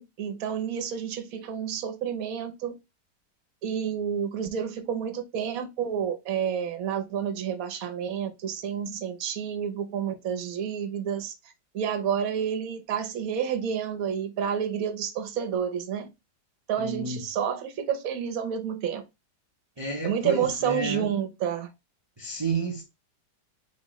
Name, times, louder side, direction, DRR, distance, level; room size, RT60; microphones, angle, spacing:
voice 1, 0.0-2.7 3.6-11.3 11.7-16.1 16.7-19.0 20.0-21.7, right 8 dB, 60° right, 1.2 m, -29 dB
voice 2, 16.8-17.2 19.8-21.1 22.2-22.8, right 3 dB, 25° right, 0.6 m, -31 dB
4.2 x 3.9 x 3.0 m
omnidirectional pair, 1.9 m